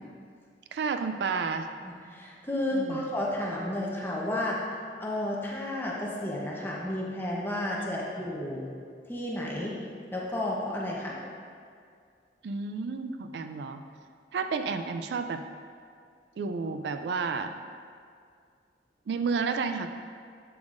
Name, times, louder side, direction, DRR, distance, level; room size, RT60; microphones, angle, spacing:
voice 1, 0.7-1.7 2.7-3.0 7.8-7.9 12.4-13.8 14.3-15.4 16.4-17.6 19.1-19.9, right 5 dB, 65° right, 8 dB, 0.3 m, -31 dB
voice 2, 1.8-4.6 5.0-8.7 9.1-9.8 10.1-11.2, left 1 dB, 10° left, -4 dB, 0.8 m, -32 dB
7.9 x 7.1 x 2.5 m, 2.2 s
head